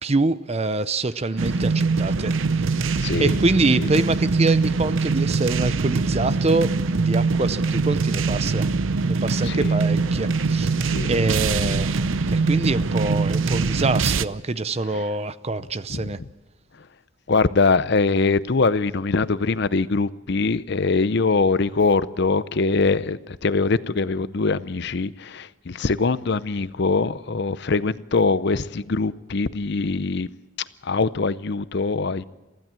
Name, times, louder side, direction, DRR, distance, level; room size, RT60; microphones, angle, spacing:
voice 1, 0.0-2.7 3.2-8.7 9.0-10.7 11.0-16.2, right 3 dB, 30° right, 0.6 m, -25 dB
sound 1, 1.4-14.2, right 4 dB, 70° right, 0.6 m, -23 dB
voice 2, 3.0-3.4 3.8-3.9 9.4-9.8 10.9-11.1 11.7-11.8 14.9-15.0 15.9-16.0 17.3-30.3 30.8-32.2, left 4 dB, 55° left, 0.6 m, -23 dB
23.5 x 15.5 x 7.6 m
head